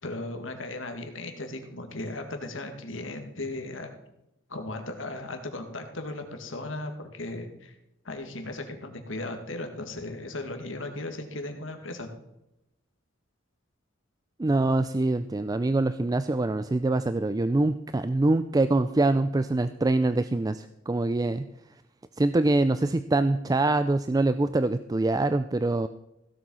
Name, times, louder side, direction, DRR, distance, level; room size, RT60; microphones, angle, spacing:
voice 1, 0.0-3.9 4.5-7.7 8.0-12.1, left 2 dB, 70° left, 5 dB, 2.1 m, -36 dB
voice 2, 14.4-21.5 22.2-25.9, right 2 dB, 20° right, 12 dB, 0.4 m, -24 dB
16.0 x 7.7 x 5.6 m, 0.88 s
head